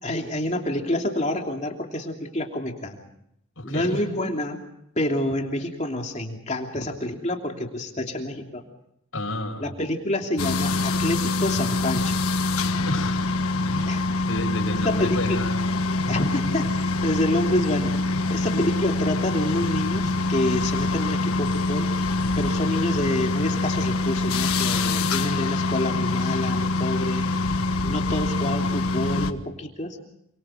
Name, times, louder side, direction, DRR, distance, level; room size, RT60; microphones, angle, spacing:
voice 1, 0.0-3.0 3.6-4.6 4.9-8.6 9.6-12.3 12.7-12.8 13.9-14.1 14.7-15.4 16.1-17.9 18.3-21.9 22.4-27.3 27.8-30.0, left 1 dB, 30° left, 2 dB, 2.9 m, -28 dB
voice 2, 3.6-4.0 9.1-9.7 12.9-13.2 13.7-13.9 14.3-16.5 18.4-18.6, left 1 dB, 70° left, 4 dB, 5.6 m, -31 dB
sound 1, 10.4-29.3, left 2 dB, 90° left, 1.5 m, -25 dB
29.0 x 25.0 x 5.0 m, 0.76 s
head